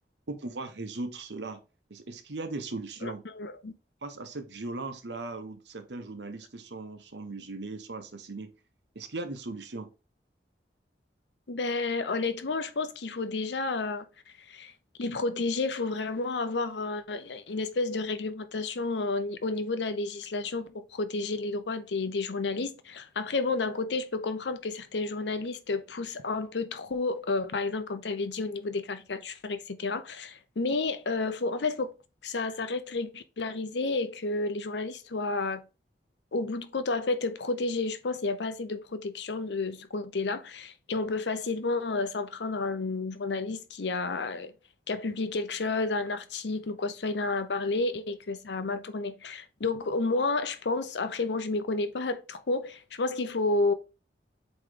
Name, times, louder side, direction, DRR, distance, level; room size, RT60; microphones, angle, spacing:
voice 1, 0.3-1.6 1.9-3.2 4.0-8.5 8.9-9.9, right 2 dB, 80° right, 1.0 m, -38 dB
voice 2, 3.0-3.7 11.5-14.1 14.5-14.7 15.0-31.9 32.2-35.6 36.3-44.5 44.9-53.7, left 3 dB, 85° left, 0.7 m, -31 dB
8.0 x 3.1 x 3.8 m
head